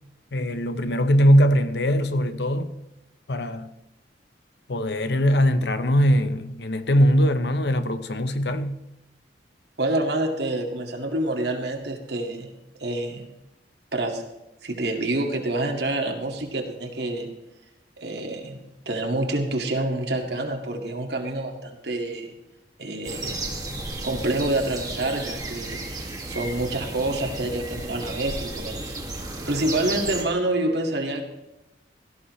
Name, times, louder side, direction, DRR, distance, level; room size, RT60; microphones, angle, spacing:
voice 1, 0.3-2.8 3.3-3.7 4.7-8.8, equal, 65° left, 0.8 m, -21 dB
voice 2, 9.8-12.5 12.8-13.2 13.9-14.2 14.6-17.3 18.0-18.6 18.9-22.3 22.8-23.5 24.0-31.2, right 2 dB, 65° right, 2.1 m, -27 dB
sound 1, 23.0-30.2, right 2 dB, 20° right, 2.1 m, -33 dB
17.0 x 14.0 x 3.2 m
head